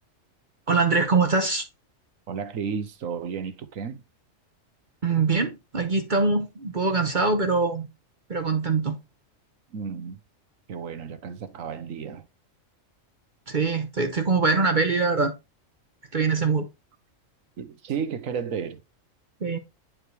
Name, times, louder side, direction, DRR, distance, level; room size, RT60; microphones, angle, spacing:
voice 1, 0.7-1.7 5.0-7.9 8.3-9.0 13.5-15.3 16.1-16.7 19.4-19.6, right 4 dB, 40° right, 1.1 m, -23 dB
voice 2, 2.3-4.0 9.7-10.2 10.7-12.2 17.6-18.8, right 6 dB, 80° right, 1.4 m, -32 dB
10.5 x 4.6 x 3.3 m
omnidirectional pair, 1.4 m